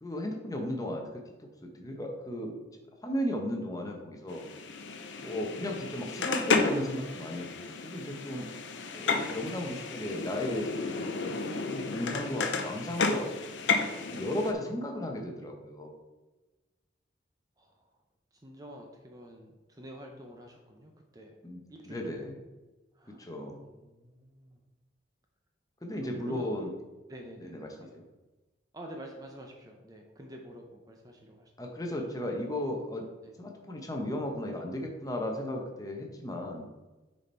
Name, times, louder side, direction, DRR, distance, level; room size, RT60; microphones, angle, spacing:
voice 1, 0.0-1.1 1.7-2.6 3.0-4.4 5.2-8.5 8.9-13.4 14.1-15.9 21.4-21.6 21.9-22.3 23.2-23.6 25.8-26.7 27.4-27.7 27.9-28.0 31.6-33.0 33.4-36.7, left 1 dB, 20° left, 2 dB, 0.9 m, -35 dB
sound 1, 4.3-14.5, left 4 dB, 80° left, 0.7 m, -32 dB
voice 2, 14.6-15.2 17.6-17.9 18.3-21.4 21.7-22.3 22.9-23.3 23.6-24.6 26.0-26.7 27.1-28.0 28.7-31.7 32.1-32.3 33.2-33.3, right 1 dB, 20° right, 2 dB, 0.6 m, -49 dB
6.6 x 4.2 x 4.4 m, 1.2 s
head